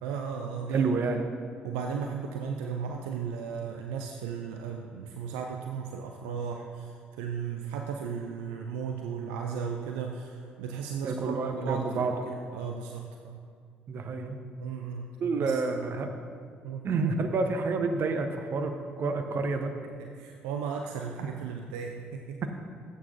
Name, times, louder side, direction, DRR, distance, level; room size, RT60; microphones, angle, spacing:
voice 1, 0.0-0.9 1.6-13.4 14.6-15.1 15.4-15.6 16.6-16.8 20.0-22.5, right 6 dB, 70° right, 3 dB, 0.5 m, -35 dB
voice 2, 0.7-1.2 11.0-12.3 13.9-14.4 15.2-16.1 16.8-19.7 22.4-22.5, right 4 dB, 50° right, 6 dB, 0.8 m, -29 dB
14.0 x 8.4 x 2.6 m, 2.2 s
figure-of-eight pair, 50°, 5 cm